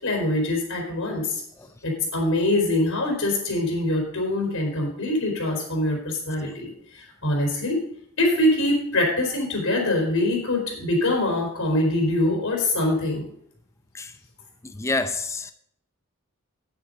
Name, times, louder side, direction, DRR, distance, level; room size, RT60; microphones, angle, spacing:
voice 1, 0.0-1.4 1.8-7.8 8.2-13.3, left 1 dB, 65° left, 3.8 m, -24 dB
voice 2, 14.6-15.5, left 3 dB, 15° left, 0.6 m, -28 dB
9.6 x 9.6 x 5.1 m
head